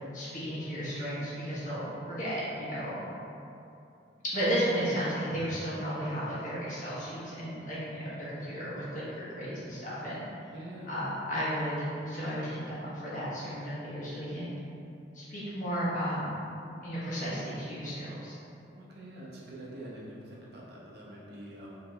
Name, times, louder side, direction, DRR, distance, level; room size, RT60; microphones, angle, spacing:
voice 1, 0.1-3.0 4.3-10.3 10.9-11.8 12.1-14.6 15.1-16.3 16.8-18.3, equal, 45° left, -10 dB, 1.1 m, -34 dB
voice 2, 10.5-10.9 18.7-21.8, right 1 dB, 60° right, -4 dB, 0.7 m, -45 dB
4.7 x 3.0 x 2.3 m, 2.7 s
head